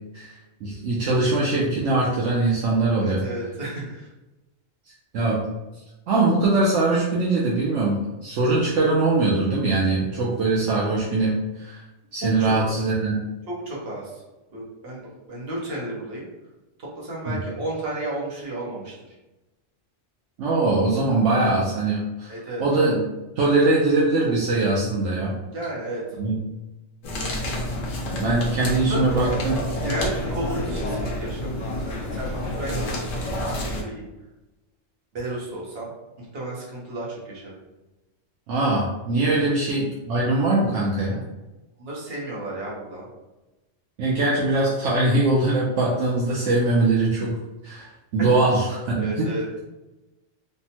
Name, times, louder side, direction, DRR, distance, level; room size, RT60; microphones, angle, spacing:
voice 1, 0.1-3.2 5.1-5.4 6.1-11.8 12.1-13.1 17.3-17.4 20.4-22.3 22.6-23.1 23.4-25.3 26.2-26.4 28.0-29.6 38.5-41.2 44.0-47.3 47.6-49.3, right 2 dB, 75° right, -5 dB, 0.9 m, -22 dB
voice 2, 3.0-4.1 12.2-12.5 13.5-14.2 14.5-15.0 15.3-16.3 17.0-19.1 22.3-22.6 25.5-26.0 28.7-29.4 29.8-33.3 33.5-34.1 35.1-35.9 36.2-37.5 39.3-39.5 41.8-43.1 49.0-49.5, right 1 dB, 55° right, -4 dB, 1.1 m, -33 dB
sound 1, 27.0-33.8, left 1 dB, 55° left, 0.7 m, -29 dB
3.3 x 2.1 x 2.8 m, 1.0 s
omnidirectional pair, 1.3 m